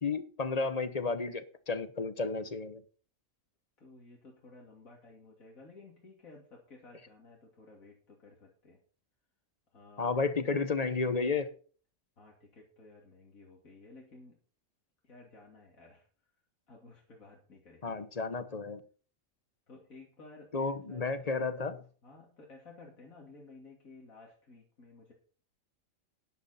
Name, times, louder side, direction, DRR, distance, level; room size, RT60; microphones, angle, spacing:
voice 1, 0.0-2.8 10.0-11.5 17.8-18.8 20.5-21.8, left 4 dB, 30° left, 12 dB, 1.1 m, -32 dB
voice 2, 3.8-8.8 9.7-10.1 12.2-14.4 15.0-16.1 16.7-18.0 19.7-21.4 22.0-25.1, left 3 dB, 90° left, -2 dB, 3.3 m, -55 dB
12.0 x 11.0 x 4.3 m, 0.41 s
omnidirectional pair, 1.4 m